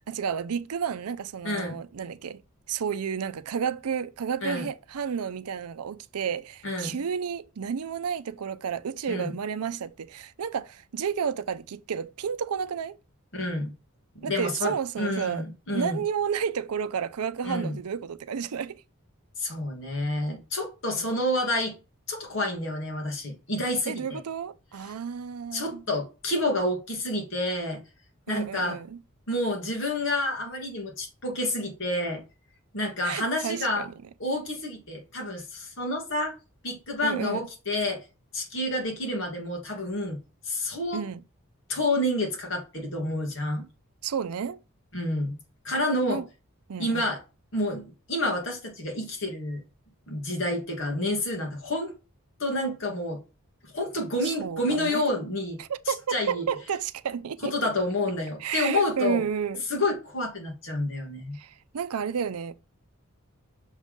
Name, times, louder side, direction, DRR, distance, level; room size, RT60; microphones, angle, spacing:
voice 1, 0.1-2.4 2.7-13.0 14.2-15.4 15.7-18.8 20.9-21.1 23.9-25.8 28.3-29.0 33.0-33.9 37.0-37.5 40.9-41.2 44.0-44.6 46.1-46.2 46.7-47.1 54.2-55.1 55.6-57.5 58.4-59.6 61.3-62.6, right 7 dB, 90° right, 0.5 m, -31 dB
voice 2, 1.4-1.8 4.4-4.7 6.6-7.0 9.1-9.3 13.3-13.7 14.2-16.0 17.4-17.8 19.4-21.7 22.1-24.2 25.5-27.8 28.3-28.8 29.3-32.2 32.7-33.8 34.2-36.4 36.6-38.0 38.3-40.2 40.4-41.0 41.7-43.6 44.9-45.4 45.6-46.2 46.8-47.2 47.5-49.6 50.1-51.9 52.4-53.2 53.6-55.6 56.1-56.5 57.4-59.2 59.7-61.4, left 1 dB, 60° left, 2.3 m, -29 dB
6.3 x 3.7 x 5.2 m
head